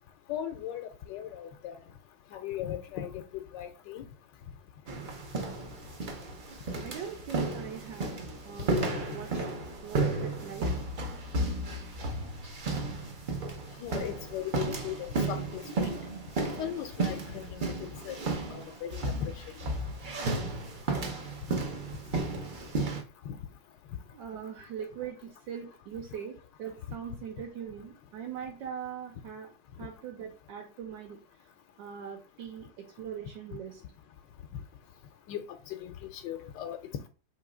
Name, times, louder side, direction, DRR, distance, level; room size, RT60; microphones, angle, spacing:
voice 1, 0.3-1.7 2.3-4.0 13.8-16.0 16.6-18.2 18.5-19.3 21.5-21.6 23.3-23.4 35.3-35.4 35.8-36.8, left 10 dB, 80° left, 1.2 m, -38 dB
sound 1, 4.9-23.0, right 2 dB, 60° right, 0.5 m, -33 dB
voice 2, 6.8-8.2 8.4-9.3 9.8-10.7 24.1-29.5 29.8-31.2 31.8-33.8, right 8 dB, 85° right, 1.5 m, -41 dB
3.7 x 3.0 x 4.8 m
omnidirectional pair, 1.9 m